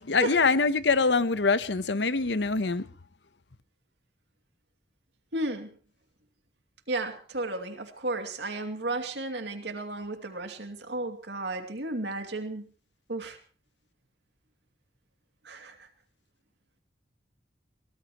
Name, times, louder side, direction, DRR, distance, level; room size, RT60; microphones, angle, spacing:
voice 1, 0.1-2.8, left 4 dB, 80° left, 1.0 m, -24 dB
voice 2, 5.3-5.7 6.9-12.7 13.1-13.4 15.4-15.9, right 2 dB, 75° right, 2.6 m, -33 dB
23.5 x 18.0 x 3.1 m
head